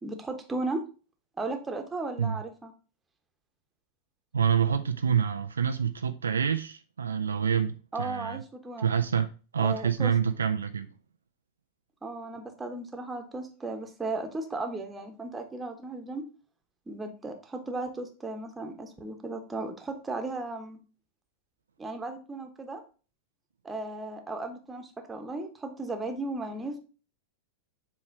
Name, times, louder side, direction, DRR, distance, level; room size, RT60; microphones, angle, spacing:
voice 1, 0.0-0.8 1.4-2.7 7.9-8.9 9.6-10.1 12.0-16.2 16.9-20.8 21.8-22.8 23.6-26.8, right 2 dB, 10° right, 1.2 m, -35 dB
voice 2, 4.3-8.4 8.8-10.9, right 7 dB, 70° right, 0.4 m, -27 dB
7.6 x 3.2 x 4.6 m
figure-of-eight pair, 90°, 0 cm